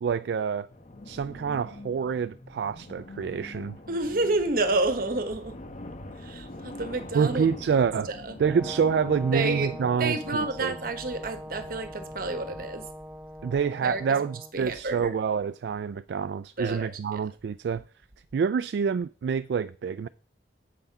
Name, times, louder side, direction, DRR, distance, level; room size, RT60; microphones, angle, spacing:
voice 1, 0.0-0.7 1.1-3.8 7.1-8.1 8.4-10.7 13.4-17.8 18.3-20.1, right 6 dB, 70° right, 0.3 m, -27 dB
sound 1, 0.7-12.7, left 1 dB, 40° left, 0.9 m, -44 dB
voice 2, 3.9-5.6 6.2-8.4 9.3-9.7 10.0-12.9 13.8-14.2 14.5-15.1 16.6-17.2, right 2 dB, 55° right, 1.2 m, -30 dB
Brass instrument, 8.4-14.5, equal, 10° right, 0.7 m, -42 dB
8.3 x 5.7 x 5.4 m
head